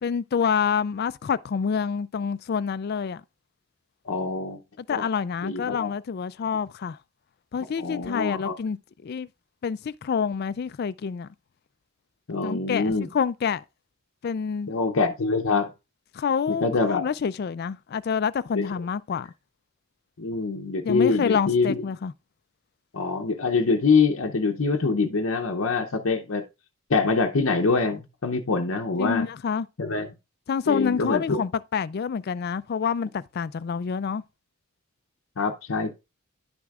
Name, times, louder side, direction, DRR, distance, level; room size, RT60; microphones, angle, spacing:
voice 1, 0.0-3.2 4.8-7.0 7.5-8.8 9.0-9.3 9.6-11.3 12.4-13.6 14.2-14.7 16.1-19.3 20.8-22.1 29.0-29.7 30.5-34.2, left 6 dB, 45° left, 0.3 m, -27 dB
voice 2, 4.0-4.6 4.9-5.1 5.4-5.9 7.8-8.5 12.3-13.1 14.7-15.7 16.5-17.0 18.5-18.7 20.2-21.8 22.9-26.4 26.9-29.3 29.8-30.1 30.7-31.4 35.4-35.9, left 4 dB, 70° left, 0.7 m, -24 dB
10.5 x 6.1 x 2.4 m
head